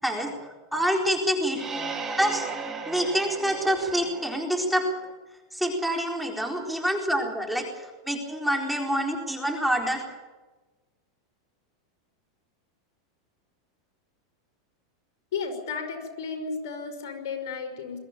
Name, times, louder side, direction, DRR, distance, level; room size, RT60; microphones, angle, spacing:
voice 1, 0.0-1.6 2.2-2.5 2.9-4.9 5.5-10.0, equal, ahead, 2 dB, 4.2 m, -27 dB
sound 1, 1.5-5.1, right 4 dB, 20° right, 3.4 m, -36 dB
voice 2, 15.3-18.0, left 5 dB, 70° left, 4 dB, 5.3 m, -33 dB
22.0 x 14.5 x 9.2 m, 1.2 s
hypercardioid pair, 120°, 2 cm